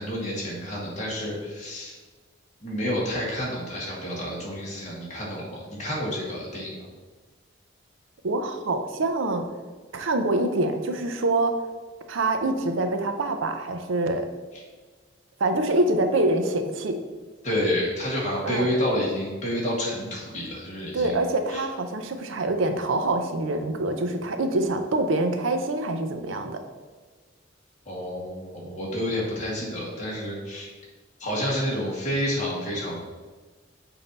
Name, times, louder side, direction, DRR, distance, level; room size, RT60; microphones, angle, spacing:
voice 1, 0.0-2.0 2.6-6.7 14.5-14.6 17.4-21.2 21.5-21.6 27.8-30.7 31.2-33.0, equal, 40° left, -5 dB, 1.8 m, -29 dB
voice 2, 8.2-9.5 9.9-11.5 12.1-14.3 15.4-17.0 18.4-18.7 20.9-26.6, right 2 dB, 85° right, 6 dB, 0.6 m, -25 dB
7.0 x 2.8 x 5.2 m, 1.4 s
head